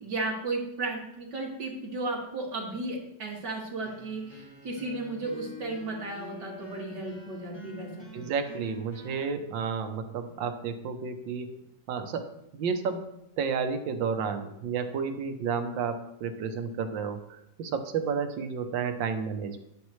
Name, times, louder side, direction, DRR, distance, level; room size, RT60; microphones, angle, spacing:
voice 1, 0.0-8.2, right 2 dB, 65° right, -3 dB, 2.9 m, -34 dB
sound 1, 3.8-9.3, left 1 dB, 15° left, 1.6 m, -47 dB
voice 2, 8.1-11.6 11.9-12.3 12.5-13.1 13.4-19.6, right 6 dB, 90° right, 7 dB, 1.6 m, -31 dB
10.5 x 9.7 x 3.2 m, 0.81 s
omnidirectional pair, 2.0 m